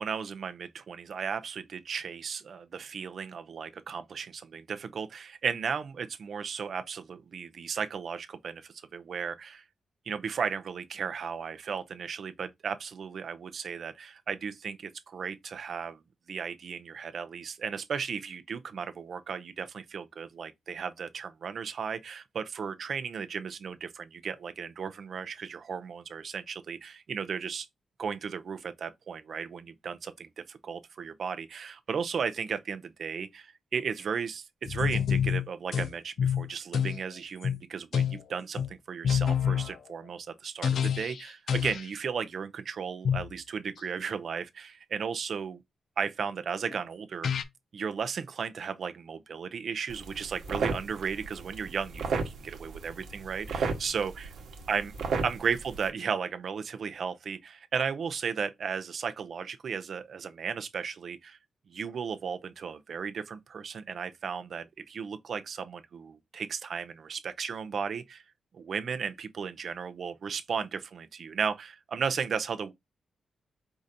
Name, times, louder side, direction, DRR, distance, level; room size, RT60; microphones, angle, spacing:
voice 1, 0.0-9.6 10.1-16.0 16.3-27.7 28.0-45.6 46.0-47.3 47.7-54.3 54.7-54.9 55.2-61.4 61.7-68.2 68.5-72.7, right 6 dB, 60° right, 0.6 m, -35 dB
sound 1, 34.7-35.9 36.2-37.0 37.4-37.6 37.9-38.2 38.6-38.7 39.0-39.8 40.6-41.2 41.5-41.9 43.0-43.3 46.7-46.8 47.2-47.4, left 8 dB, 70° left, 0.5 m, -27 dB
sound 2, 49.9-55.9, right 4 dB, 75° right, 1.2 m, -35 dB
4.8 x 2.6 x 4.1 m
cardioid pair, 115°, 0 cm